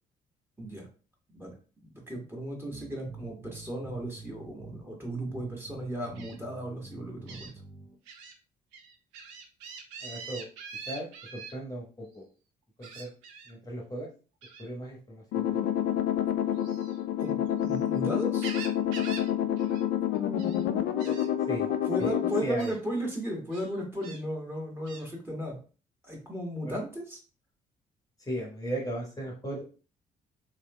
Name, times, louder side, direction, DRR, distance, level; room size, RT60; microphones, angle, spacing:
voice 1, 1.8-7.5 17.2-18.5 21.0-21.2 21.9-25.6 26.0-27.2, equal, 10° right, -1 dB, 1.4 m, -35 dB
sound 1, 2.7-8.0, right 3 dB, 35° right, 0.9 m, -48 dB
Gull seagull, 6.2-6.3 7.3-7.5 8.1-8.3 8.7-11.5 12.8-13.5 14.4-14.7 16.5-17.8 18.2-19.3 19.6-19.8 20.1-20.6 21.0-21.3 22.0-22.1 22.6-22.8 23.5-24.2 24.9-25.1, right 5 dB, 65° right, 0.6 m, -44 dB
voice 2, 10.0-10.5 10.9-11.1 11.3-12.3 12.8-13.1 13.5-14.1 14.6-15.6 21.5-21.7 22.0-22.1 22.4-22.7 26.6-26.8 28.2-29.6, right 1 dB, 15° left, -2 dB, 1.1 m, -36 dB
sound 2, 15.3-22.4, left 10 dB, 55° left, 0.4 m, -28 dB
3.2 x 3.0 x 2.2 m, 0.36 s
figure-of-eight pair, 45°, 20 cm